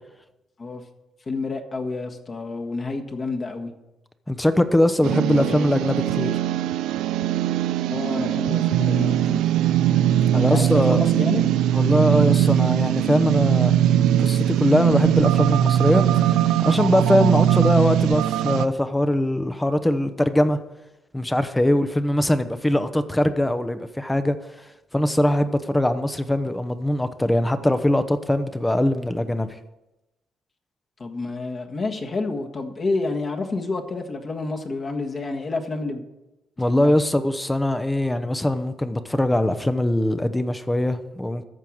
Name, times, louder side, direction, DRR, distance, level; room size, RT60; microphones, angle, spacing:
voice 1, 1.3-3.7 5.3-5.7 7.9-9.5 10.3-11.4 31.0-36.0 36.7-36.9, left 3 dB, 40° left, 1.7 m, -29 dB
voice 2, 4.3-6.3 10.3-11.0 11.7-13.7 14.2-20.6 21.1-24.4 24.9-29.5 36.6-41.4, left 1 dB, 10° left, 0.8 m, -21 dB
sound 1, 5.0-18.7, right 11 dB, 90° right, 0.4 m, -20 dB
13.5 x 4.7 x 8.7 m
cardioid pair, 90°, 0 cm